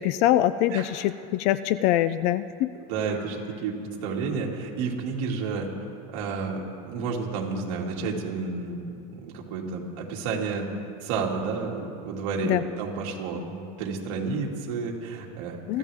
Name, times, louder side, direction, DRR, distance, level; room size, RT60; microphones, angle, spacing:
voice 1, 0.0-2.7 12.4-12.6 15.7-15.8, left 13 dB, 40° left, 15 dB, 0.4 m, -24 dB
voice 2, 2.9-5.7 6.1-10.7 11.0-15.6, right 4 dB, 55° right, -1 dB, 2.4 m, -31 dB
23.5 x 14.5 x 3.5 m, 2.5 s
supercardioid pair, 170°, 18 cm